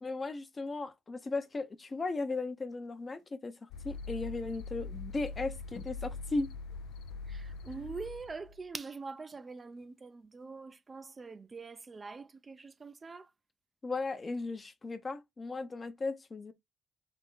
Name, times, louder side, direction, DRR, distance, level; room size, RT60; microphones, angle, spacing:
voice 1, 0.0-6.5 13.8-16.5, left 3 dB, 30° left, 0.7 m, -36 dB
sound 1, 1.4-9.9 10.3-10.4, left 3 dB, 75° left, 1.0 m, -61 dB
sound 2, 3.7-8.6, left 4 dB, 90° left, 0.4 m, -43 dB
voice 2, 7.3-13.3, right 4 dB, 30° right, 0.4 m, -44 dB
3.4 x 2.9 x 3.9 m
cardioid pair, 90°, 0 cm